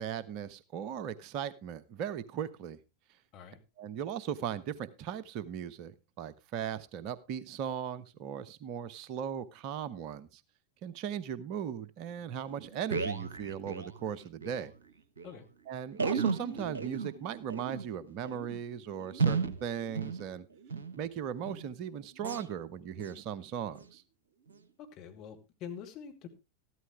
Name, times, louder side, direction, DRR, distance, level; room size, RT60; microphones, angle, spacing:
voice 1, 0.0-2.8 3.8-10.4 10.8-14.7 15.7-20.5 21.0-24.0, right 8 dB, 40° right, 16 dB, 0.8 m, -38 dB
sound 1, 12.1-12.2 12.5-14.6 14.9-15.0 15.2-15.3 15.9-21.0 21.4-21.7 22.2-22.5 23.0-23.2 23.7-23.9 24.5-24.6, right 5 dB, 65° right, 1.0 m, -35 dB
voice 2, 24.8-26.3, left 8 dB, 40° left, 2 dB, 2.5 m, -45 dB
13.5 x 12.5 x 3.2 m, 0.27 s
figure-of-eight pair, 90°, 0 cm